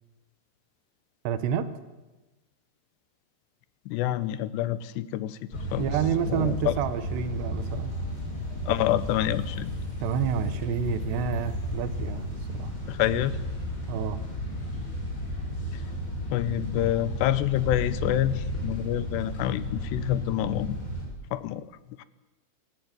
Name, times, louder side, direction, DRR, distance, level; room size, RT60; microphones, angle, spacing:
voice 1, 1.3-1.7 5.8-7.9 10.0-12.7 13.9-14.2, right 8 dB, 85° right, 11 dB, 3.4 m, -29 dB
voice 2, 3.9-5.9 6.3-6.7 8.7-9.7 12.9-13.4 16.3-20.8 21.3-21.6 22.0-22.1, left 13 dB, 90° left, 16 dB, 3.1 m, -27 dB
sound 1, 5.5-21.0, left 1 dB, 30° left, 6.8 m, -33 dB
25.0 x 14.0 x 9.6 m, 1.1 s
omnidirectional pair, 4.8 m